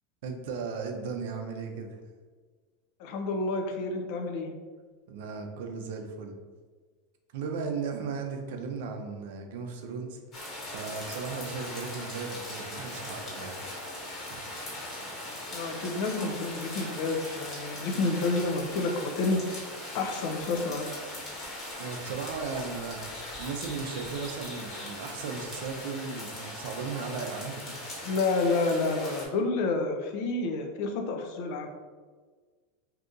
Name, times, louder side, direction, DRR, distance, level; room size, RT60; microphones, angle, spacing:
voice 1, 0.2-2.0 5.1-6.4 7.3-10.2 10.7-13.6 14.3-14.4 21.8-23.0 23.4-27.8, right 5 dB, 75° right, 4 dB, 0.5 m, -36 dB
voice 2, 3.0-4.5 15.5-19.4 19.9-21.0 28.0-31.7, left 3 dB, 60° left, 4 dB, 0.5 m, -29 dB
sound 1, 10.3-29.2, left 1 dB, 30° left, 1.1 m, -40 dB
2.7 x 2.5 x 3.7 m, 1.5 s
supercardioid pair, 130°, 0 cm